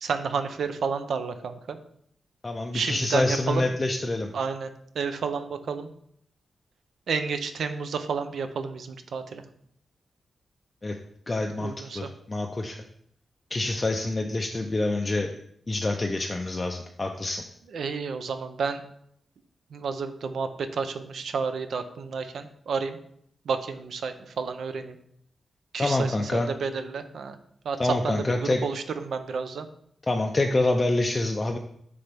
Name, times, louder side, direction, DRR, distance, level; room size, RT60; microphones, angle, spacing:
voice 1, 0.0-1.8 2.7-3.7 4.3-4.7 4.9-5.9 7.1-9.4 11.6-12.1 17.7-18.8 19.7-23.0 23.5-25.0 25.7-27.4 27.6-29.7, right 5 dB, 70° right, 9 dB, 0.6 m, -31 dB
voice 2, 2.4-4.3 10.8-11.0 11.3-12.8 13.5-15.3 15.7-17.4 25.8-26.5 27.8-28.6 30.1-31.6, left 2 dB, 25° left, 3 dB, 0.4 m, -26 dB
9.6 x 3.4 x 3.4 m, 0.68 s
wide cardioid pair, 155°, 0 cm